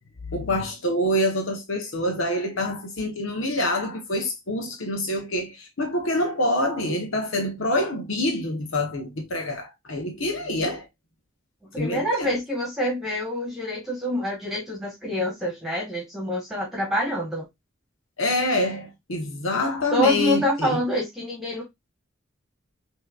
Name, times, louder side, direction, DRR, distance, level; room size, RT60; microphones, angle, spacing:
voice 1, 0.3-10.9 11.8-12.4 18.2-20.8, left 1 dB, 85° left, 1.1 m, -26 dB
voice 2, 11.7-17.4 19.9-21.6, left 1 dB, ahead, 1.4 m, -26 dB
5.6 x 2.9 x 2.3 m
head